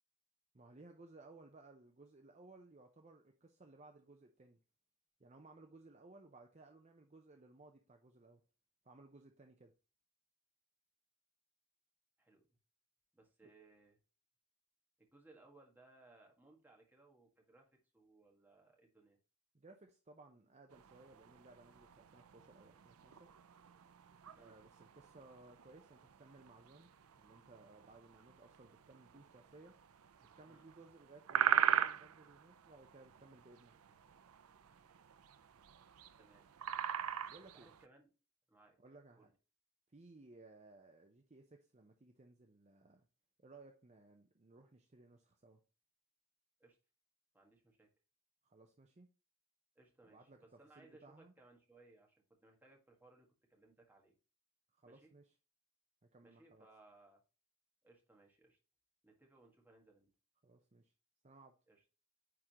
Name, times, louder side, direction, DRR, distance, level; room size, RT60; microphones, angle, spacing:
voice 1, 0.5-4.6 5.2-8.4 8.8-9.7 19.5-23.3 24.3-29.7 30.4-33.7 37.3-37.7 38.8-39.3 39.9-43.1 43.4-45.6 48.4-49.1 50.0-51.3 54.7-55.3 56.1-56.7 60.4-60.9 61.2-61.6, right 2 dB, 30° right, 0.6 m, -60 dB
voice 2, 13.1-14.0 15.0-17.7 17.9-19.2 24.3-24.6 30.5-30.6 36.2-36.5 37.6-38.1 38.5-38.8 39.1-39.3 46.6-46.8 47.3-47.9 49.7-54.1 54.8-55.1 56.2-57.2 57.8-58.6 59.0-60.1 61.7-61.8, right 2 dB, 10° right, 1.6 m, -65 dB
sound 1, 20.7-37.9, right 9 dB, 85° right, 0.5 m, -41 dB
9.4 x 3.7 x 2.9 m
head